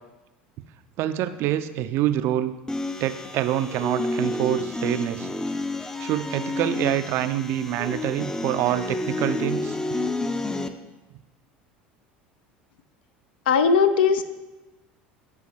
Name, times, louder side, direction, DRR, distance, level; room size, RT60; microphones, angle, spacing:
voice 1, 1.0-2.5 3.0-5.3 6.0-9.8, right 12 dB, 55° right, 12 dB, 0.3 m, -26 dB
sound 1, 2.7-10.7, left 2 dB, 10° left, 0.4 m, -30 dB
voice 2, 13.5-14.2, left 6 dB, 75° left, 11 dB, 0.4 m, -18 dB
9.7 x 3.8 x 2.8 m, 1.1 s
hypercardioid pair, 75°, 5 cm